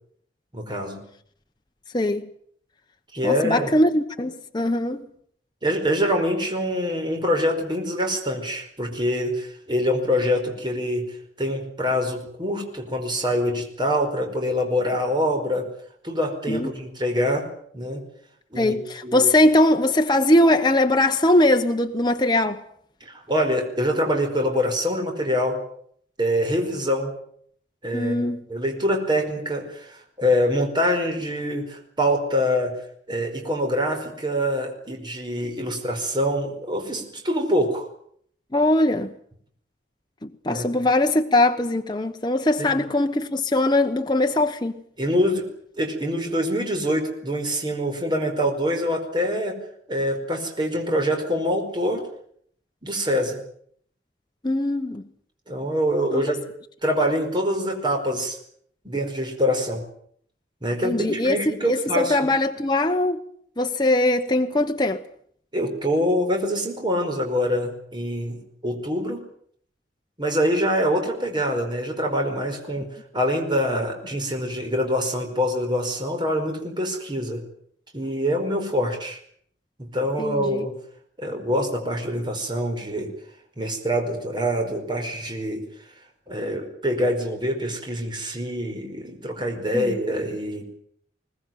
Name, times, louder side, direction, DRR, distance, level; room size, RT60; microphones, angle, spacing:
voice 1, 0.5-1.0 3.1-3.7 5.6-11.0 11.4-15.7 16.0-17.5 17.7-18.0 18.5-18.8 19.0-19.3 23.0-25.6 26.2-27.1 27.8-28.2 28.5-32.7 33.1-37.9 40.5-40.7 42.6-42.8 45.0-45.5 45.8-49.6 49.9-52.0 52.8-53.4 55.5-56.4 56.8-58.4 58.8-59.8 60.6-62.2 65.5-69.3 70.2-72.9 73.1-77.4 77.9-79.2 79.8-80.8 81.2-83.1 83.6-85.6 86.3-90.6, equal, 25° right, 5.0 m, -25 dB
voice 2, 1.9-2.3 3.2-5.1 16.5-16.7 18.6-22.6 27.9-28.4 38.5-39.1 40.2-44.8 54.4-55.0 56.1-56.2 60.8-61.4 61.7-63.2 63.6-65.0 80.2-80.6 89.7-89.9, left 1 dB, 25° left, 1.0 m, -21 dB
21.5 x 19.5 x 9.3 m
head